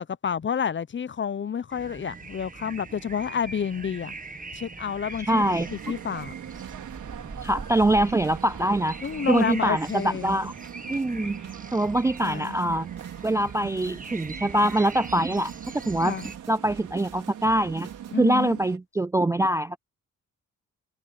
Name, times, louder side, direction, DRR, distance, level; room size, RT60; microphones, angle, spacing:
voice 1, 0.0-4.1 4.5-6.3 9.0-10.4 12.2-12.6 16.0-16.3 18.1-18.6, left 7 dB, 40° left, 0.8 m, -29 dB
sound 1, 1.7-16.4, right 4 dB, 25° right, 1.5 m, -42 dB
voice 2, 5.2-5.7 7.4-9.0 9.3-10.5 10.9-11.4 11.7-12.9 13.2-15.5 15.9-16.2 16.5-17.9 18.2-19.8, right 1 dB, 10° right, 0.3 m, -24 dB
sound 2, 5.3-18.8, right 10 dB, 75° right, 4.5 m, -41 dB
sound 3, 5.4-18.6, right 7 dB, 60° right, 3.6 m, -49 dB
supercardioid pair, 65°, 30 cm